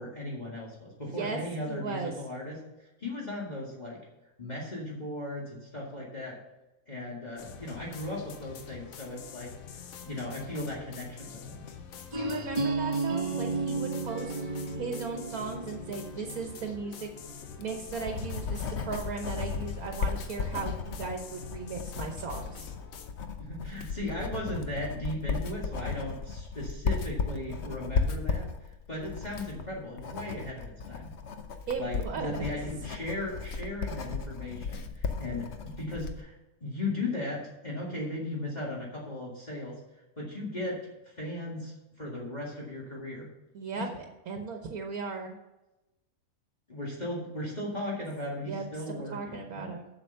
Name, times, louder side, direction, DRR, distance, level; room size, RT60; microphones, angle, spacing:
voice 1, 0.0-2.6 3.0-4.0 4.4-6.4 6.9-11.6 23.4-31.1 31.8-36.4 36.6-39.8 40.2-43.3 43.8-43.9 46.7-49.7, left 1 dB, 30° left, -5 dB, 2.2 m, -37 dB
voice 2, 1.0-2.1 12.1-17.1 17.3-22.7 31.7-32.3 43.5-45.4 48.5-48.6 49.1-49.9, right 5 dB, 80° right, 3 dB, 1.5 m, -37 dB
sound 1, 7.4-23.1, left 7 dB, 70° left, 1.3 m, -46 dB
sound 2, 12.1-17.9, right 3 dB, 30° right, 1.1 m, -34 dB
Writing, 17.4-36.2, left 5 dB, 55° left, 1.0 m, -35 dB
7.8 x 7.0 x 6.6 m, 0.98 s
omnidirectional pair, 1.5 m